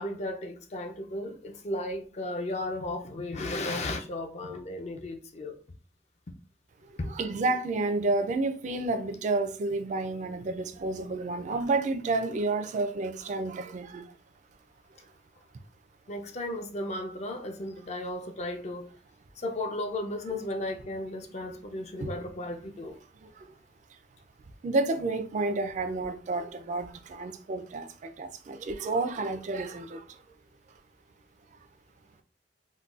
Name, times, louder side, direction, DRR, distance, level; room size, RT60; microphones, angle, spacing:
voice 1, 0.0-5.6 7.0-7.1 16.1-18.9 19.4-23.0, left 1 dB, 40° left, 0.4 m, -35 dB
voice 2, 7.0-14.1 21.9-22.2 23.2-23.5 24.6-30.2, right 3 dB, 45° right, 0.3 m, -30 dB
3.8 x 2.2 x 2.4 m
head